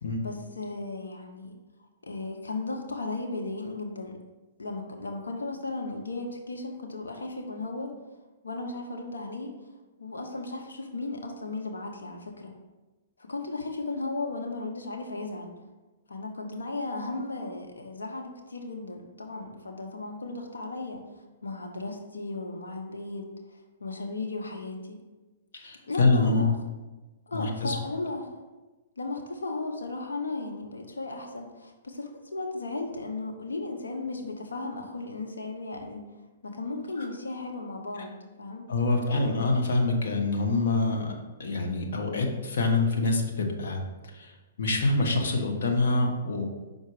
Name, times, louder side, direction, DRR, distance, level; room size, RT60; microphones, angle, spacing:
voice 1, 0.2-1.5 2.1-4.1 4.6-8.0 8.4-9.6 10.0-12.5 13.2-15.5 16.1-21.0 21.4-23.3 23.8-25.0 25.9-26.5 27.3-28.4 29.0-36.0 36.4-38.7, left 3 dB, 90° left, 3 dB, 1.0 m, -35 dB
voice 2, 25.5-26.4 27.3-27.8 37.0-37.1 38.7-41.1 41.4-43.8 44.1-44.3 44.6-46.5, left 2 dB, 70° left, 2 dB, 1.2 m, -25 dB
6.0 x 4.1 x 4.9 m, 1.2 s
hypercardioid pair, 125°, 0 cm